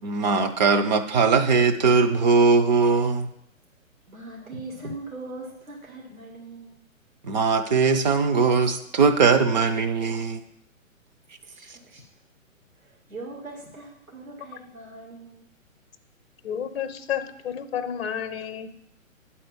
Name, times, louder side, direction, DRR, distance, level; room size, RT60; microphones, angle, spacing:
voice 1, 0.0-3.3 7.2-10.4, right 4 dB, 35° right, 7 dB, 0.7 m, -20 dB
voice 2, 4.1-6.8 11.4-12.0 12.8-15.4, right 2 dB, 80° right, -1 dB, 2.2 m, -40 dB
voice 3, 16.4-18.7, left 8 dB, 50° left, 11 dB, 0.8 m, -31 dB
9.1 x 4.3 x 7.2 m, 0.78 s
figure-of-eight pair, 130°, 41 cm